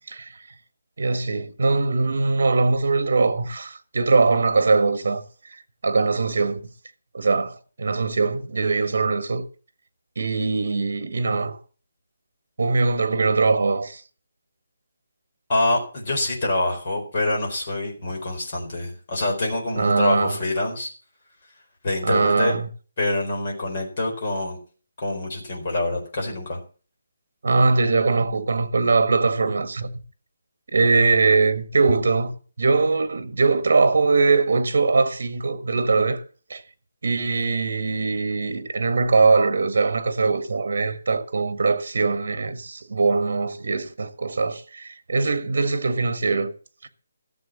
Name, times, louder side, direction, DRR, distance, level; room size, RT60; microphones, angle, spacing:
voice 1, 1.0-5.2 5.8-6.6 7.1-9.4 10.2-11.6 12.6-14.0 19.8-20.4 22.0-22.7 27.4-29.9 30.7-32.3 32.6-36.2 36.5-36.6 37.0-46.5 46.8-46.9, right 4 dB, 55° right, 1.7 m, -21 dB
voice 2, 15.5-20.9 21.8-22.6 23.0-24.6 25.0-26.6, left 2 dB, 30° left, 4.3 m, -25 dB
14.0 x 7.5 x 7.3 m
hypercardioid pair, 180°, 0 cm